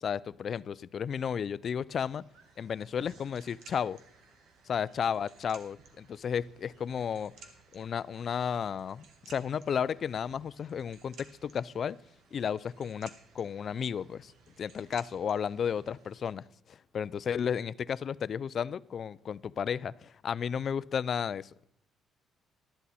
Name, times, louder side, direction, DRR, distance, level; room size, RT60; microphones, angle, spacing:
voice 1, 0.0-2.2 2.6-4.0 4.7-7.3 7.7-11.1 11.4-12.0 12.3-14.3 14.6-21.7, left 7 dB, 45° left, 0.3 m, -33 dB
sound 1, 2.1-16.3, right 5 dB, 75° right, 1.6 m, -58 dB
12.5 x 10.5 x 4.2 m
cardioid pair, 125°, 0 cm